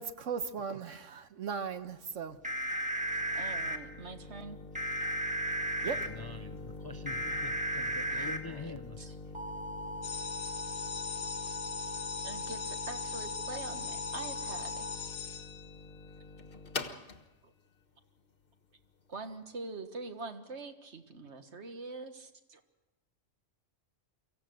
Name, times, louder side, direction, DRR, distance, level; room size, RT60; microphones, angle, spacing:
voice 1, 0.0-2.4 5.8-6.1, right 6 dB, 80° right, 10 dB, 1.4 m, -37 dB
sound 1, 1.7-19.3, left 3 dB, 45° left, 1.5 m, -46 dB
sound 2, 2.4-3.8 4.7-6.1 7.1-8.4 9.3-14.9, right 1 dB, 5° right, 1.7 m, -36 dB
voice 2, 3.3-4.6 7.7-7.8 8.1-9.2 12.2-14.9 17.4-17.5 19.1-22.6, right 3 dB, 60° right, 7 dB, 1.8 m, -44 dB
voice 3, 5.9-9.0, left 3 dB, 25° left, 9 dB, 0.5 m, -45 dB
sound 3, 10.0-16.2, left 8 dB, 80° left, 1.4 m, -42 dB
24.0 x 15.5 x 7.8 m, 1.1 s
omnidirectional pair, 1.3 m